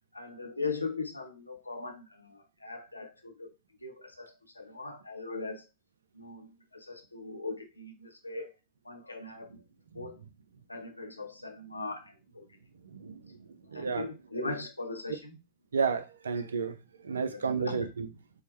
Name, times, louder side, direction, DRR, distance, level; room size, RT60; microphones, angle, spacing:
voice 1, 0.1-3.5 3.8-5.6 6.1-8.5 8.9-9.5 9.9-10.2 10.7-12.4 13.7-15.3 17.3-17.9, left 3 dB, 85° left, 0.7 m, -39 dB
voice 2, 13.7-14.1 15.7-16.8 17.0-18.1, right 5 dB, 70° right, 0.4 m, -31 dB
4.5 x 2.1 x 4.0 m
figure-of-eight pair, 90°, 0 cm